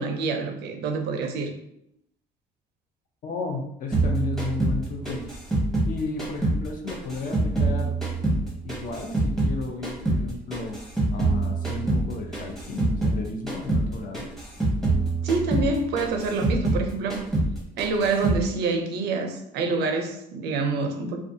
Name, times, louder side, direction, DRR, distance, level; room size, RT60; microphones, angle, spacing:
voice 1, 0.0-1.5 15.2-17.2 17.8-21.2, right 4 dB, 80° right, 5 dB, 0.5 m, -26 dB
voice 2, 3.2-5.2 5.8-8.0 8.6-10.8 11.1-14.3, left 3 dB, 55° left, 2 dB, 0.5 m, -33 dB
sound 1, 3.9-6.6 6.9-9.6 9.8-13.2 13.5-13.9 14.1-16.8 17.1-17.5 17.8-18.4, right 2 dB, ahead, 0.8 m, -25 dB
2.4 x 2.2 x 2.6 m, 0.76 s
cardioid pair, 110°, 17 cm